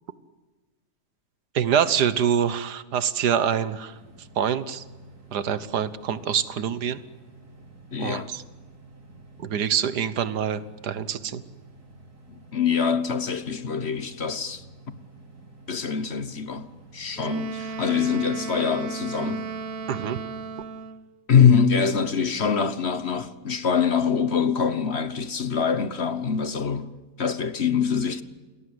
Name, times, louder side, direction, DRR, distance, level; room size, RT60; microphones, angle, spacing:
voice 1, 1.5-3.9 4.4-4.8 5.3-7.0 8.0-8.4 9.4-11.4 19.9-20.2, right 8 dB, 85° right, 1.7 m, -25 dB
sound 1, 3.9-20.5, right 2 dB, 70° right, 5.2 m, -50 dB
voice 2, 7.9-8.3 12.3-14.6 15.7-16.7 16.9-19.4 21.3-26.9 27.2-28.2, left 6 dB, 45° left, 1.3 m, -24 dB
Wind instrument woodwind instrument, 17.2-21.1, right 4 dB, 40° right, 1.1 m, -35 dB
29.0 x 20.5 x 8.0 m
omnidirectional pair, 1.7 m